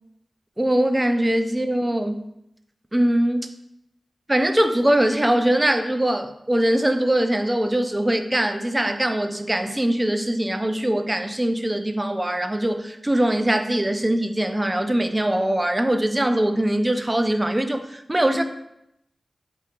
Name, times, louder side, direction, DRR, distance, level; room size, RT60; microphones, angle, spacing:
voice 1, 0.6-2.2 2.9-3.5 4.3-18.4, right 1 dB, 20° right, 8 dB, 0.3 m, -22 dB
3.0 x 2.8 x 3.3 m, 0.80 s
cardioid pair, 50°, 0 cm